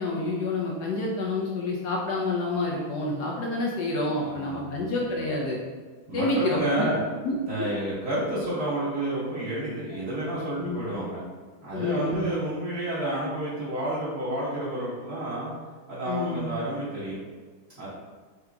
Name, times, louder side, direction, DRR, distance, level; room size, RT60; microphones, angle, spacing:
voice 1, 0.0-5.6 6.1-6.9 7.2-7.4 10.6-10.8 11.7-12.2 16.1-16.5, left 2 dB, 65° left, -3 dB, 1.1 m, -28 dB
voice 2, 4.2-4.8 6.1-7.0 7.5-11.2 11.6-15.5 15.9-17.2 17.8-17.9, right 1 dB, 50° right, -11 dB, 1.7 m, -30 dB
4.9 x 2.9 x 3.4 m, 1.5 s
omnidirectional pair, 2.3 m